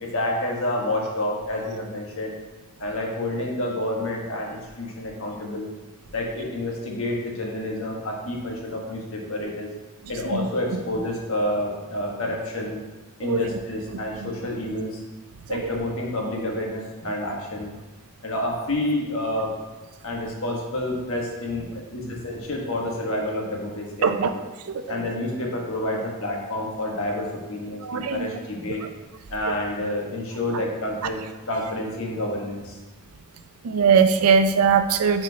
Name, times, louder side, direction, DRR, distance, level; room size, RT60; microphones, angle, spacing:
voice 1, 0.0-2.3 2.8-5.7 6.1-9.7 10.1-12.8 13.2-15.0 15.5-17.7 18.2-19.5 20.0-24.1 24.9-28.8 29.3-31.2 31.5-32.8, left 1 dB, 70° left, -1 dB, 1.2 m, -29 dB
voice 2, 10.3-10.8 13.2-13.4 14.2-14.3 15.5-15.6 24.0-24.3 24.7-24.8 27.8-28.3 33.6-35.2, right 6 dB, 85° right, 9 dB, 0.5 m, -21 dB
8.2 x 4.4 x 2.8 m, 1.2 s
head